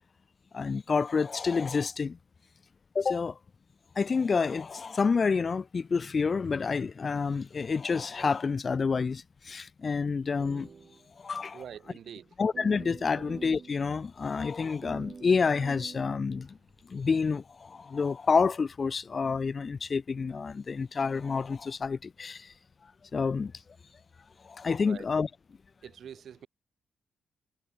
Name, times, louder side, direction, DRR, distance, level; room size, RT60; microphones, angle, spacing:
voice 1, 0.5-2.2 2.9-3.4 3.9-10.7 11.2-11.6 12.4-16.6 16.8-22.5 23.1-23.5 24.4-25.3, left 5 dB, 45° left, 0.9 m, -28 dB
sound 1, 10.0-11.3 11.6-11.7 12.5-13.8 14.8-16.8, right 5 dB, 45° right, 3.0 m, -47 dB
voice 2, 11.5-12.3 13.2-13.3 24.8-25.1 25.8-26.5, right 8 dB, 70° right, 2.5 m, -45 dB
cardioid pair, 85°, 0 cm